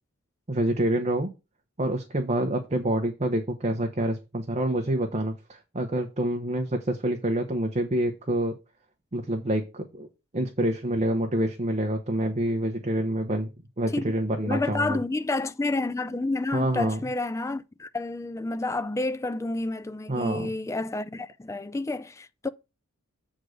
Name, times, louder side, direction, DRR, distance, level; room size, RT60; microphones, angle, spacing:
voice 1, 0.5-1.3 1.8-8.5 9.1-10.1 10.3-13.5 13.8-15.0 16.5-17.0 20.1-20.5, right 1 dB, 30° right, 0.9 m, -27 dB
voice 2, 13.9-22.5, left 2 dB, 15° left, 0.4 m, -30 dB
7.8 x 3.8 x 6.4 m
head